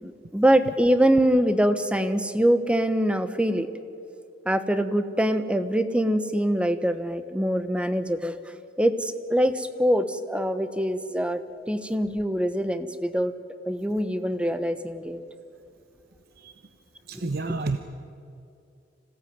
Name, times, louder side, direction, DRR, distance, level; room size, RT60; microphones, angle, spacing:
voice 1, 0.0-3.7 4.4-8.4 8.8-11.4 11.7-13.3 13.7-15.2, equal, 5° right, 11 dB, 1.2 m, -24 dB
voice 2, 17.1-17.8, right 3 dB, 60° right, 8 dB, 1.0 m, -29 dB
26.0 x 17.5 x 9.5 m, 2.6 s
head